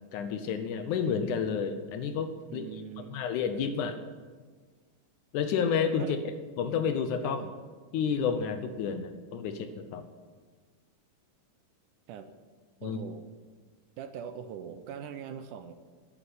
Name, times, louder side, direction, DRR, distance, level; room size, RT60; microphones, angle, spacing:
voice 1, 0.1-2.7 3.0-4.0 5.3-6.2 6.6-7.4 7.9-10.0 12.8-13.0, left 6 dB, 75° left, 9 dB, 2.1 m, -30 dB
voice 2, 2.5-3.2 6.0-6.2 7.2-7.5 12.1-12.3 12.8-13.3 14.0-15.7, right 8 dB, 75° right, 9 dB, 2.1 m, -42 dB
12.0 x 8.6 x 8.5 m, 1.5 s
omnidirectional pair, 4.0 m